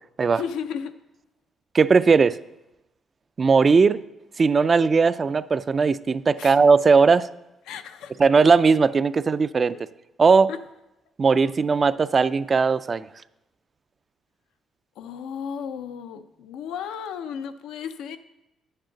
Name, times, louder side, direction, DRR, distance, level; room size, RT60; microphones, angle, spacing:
voice 1, 0.4-0.9 6.4-6.6 7.7-8.1 10.5-10.6 15.0-18.2, left 7 dB, 90° left, 9 dB, 0.5 m, -34 dB
voice 2, 1.7-2.4 3.4-4.0 4.4-7.3 8.2-9.8 10.2-10.5 11.2-13.1, right 5 dB, 40° right, 14 dB, 0.3 m, -18 dB
9.8 x 8.8 x 3.9 m, 0.92 s
cardioid pair, 90°, 0 cm